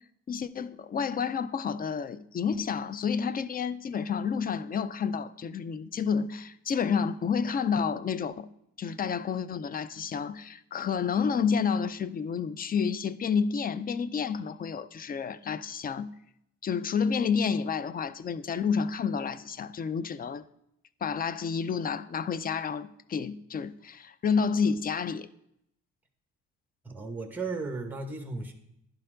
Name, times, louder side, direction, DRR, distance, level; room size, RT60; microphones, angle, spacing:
voice 1, 0.3-8.5 8.8-16.1 16.6-20.4 21.0-25.3, left 6 dB, 30° left, 0.4 m, -30 dB
voice 2, 26.8-28.5, right 3 dB, 5° right, 1.0 m, -35 dB
11.0 x 4.3 x 3.8 m
cardioid pair, 90°, 30 cm